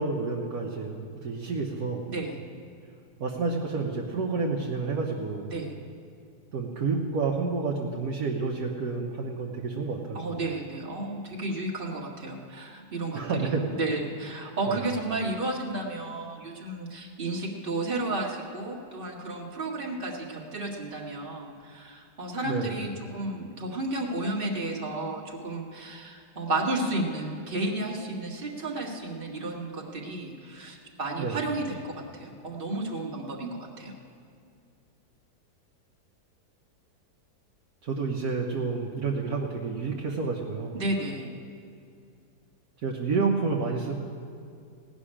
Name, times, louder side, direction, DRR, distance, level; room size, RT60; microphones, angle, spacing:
voice 1, 0.0-2.1 3.2-5.5 6.5-10.3 13.1-13.7 14.7-14.8 22.4-22.7 31.2-31.4 37.8-40.8 42.8-43.9, right 4 dB, 65° right, -2 dB, 1.5 m, -29 dB
voice 2, 2.1-2.4 5.5-5.8 10.1-34.0 40.7-41.3, right 2 dB, 35° right, -2 dB, 1.9 m, -32 dB
17.5 x 6.2 x 9.9 m, 2.4 s
omnidirectional pair, 1.8 m